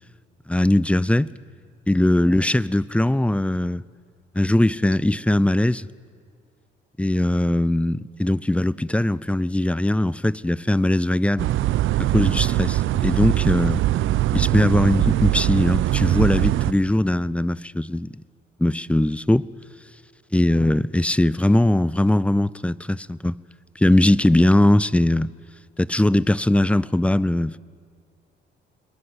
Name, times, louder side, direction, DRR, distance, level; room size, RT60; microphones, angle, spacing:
voice 1, 0.5-1.3 1.9-3.8 4.3-5.9 7.0-11.5 12.1-13.8 14.3-18.1 18.6-19.5 20.3-23.4 23.8-25.3 25.8-27.6, left 1 dB, 5° left, 0.6 m, -20 dB
sound 1, 11.4-16.7, right 14 dB, 80° right, 0.8 m, -21 dB
27.5 x 22.5 x 8.2 m
cardioid pair, 90°, 20 cm